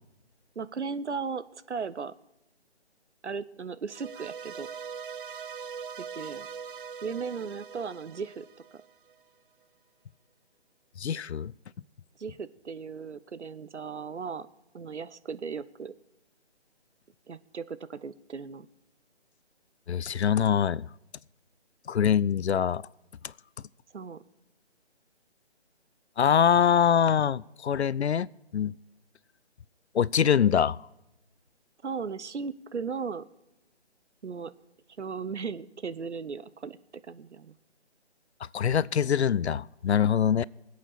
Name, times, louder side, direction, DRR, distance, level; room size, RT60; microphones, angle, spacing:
voice 1, 0.6-2.1 3.2-4.7 6.0-6.5 7.0-8.5 8.7-8.8 12.2-14.5 14.7-15.9 17.3-18.7 23.9-24.2 31.8-33.3 34.2-34.5 35.0-37.6, right 5 dB, 75° right, 0.8 m, -36 dB
sound 1, 3.9-9.1, right 6 dB, 50° right, 0.5 m, -42 dB
voice 2, 11.0-11.5 19.9-20.9 21.9-22.8 26.2-28.3 28.5-28.7 29.9-30.8 38.5-40.4, left 8 dB, 70° left, 0.5 m, -24 dB
24.0 x 8.4 x 4.2 m
figure-of-eight pair, 150°, 34 cm